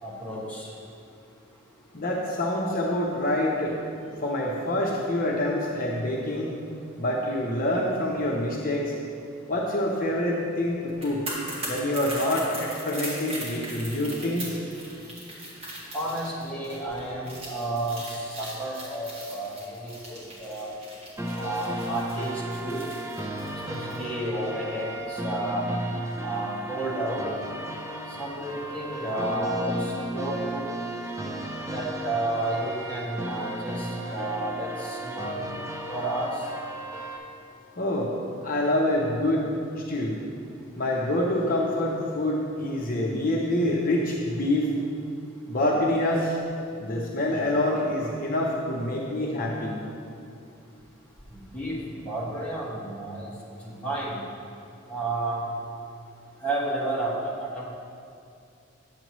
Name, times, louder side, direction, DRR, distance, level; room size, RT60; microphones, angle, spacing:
voice 1, 0.0-0.7 15.9-18.0 18.4-19.6 19.8-20.7 21.4-22.8 23.7-25.7 26.2-27.2 28.2-29.8 30.1-30.6 31.7-35.4 35.9-36.3 51.5-51.8 52.0-53.3 53.6-54.2 54.9-55.4 56.4-57.7, right 1 dB, 5° left, -7 dB, 1.4 m, -31 dB
voice 2, 1.9-3.8 4.2-6.5 7.0-8.9 9.5-11.2 11.7-14.6 37.8-38.1 38.4-39.5 39.9-40.2 40.8-44.7 45.5-46.4 46.8-49.8, left 1 dB, 45° left, -3 dB, 0.8 m, -26 dB
sound 1, 10.9-24.0 24.3-24.5, right 1 dB, 30° right, 1.8 m, -39 dB
sound 2, 21.2-37.2, right 1 dB, 15° right, 0.7 m, -34 dB
10.0 x 7.6 x 3.1 m, 2.5 s
head